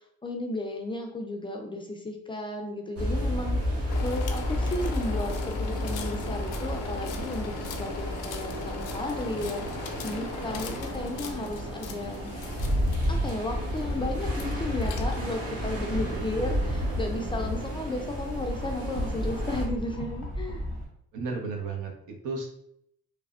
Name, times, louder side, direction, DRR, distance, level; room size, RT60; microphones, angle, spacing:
voice 1, 0.2-12.3 13.1-20.6, left 2 dB, 15° left, 2 dB, 0.3 m, -34 dB
sound 1, 3.0-19.7, equal, 50° right, 0.9 m, -33 dB
sound 2, 3.9-15.5, left 6 dB, 85° left, 0.5 m, -40 dB
Rattle, 12.4-20.9, equal, 30° right, 1.2 m, -31 dB
voice 2, 15.9-16.5 21.1-22.5, right 4 dB, 80° right, 2 dB, 0.7 m, -34 dB
3.2 x 2.0 x 2.3 m, 0.71 s
cardioid pair, 90°, 30 cm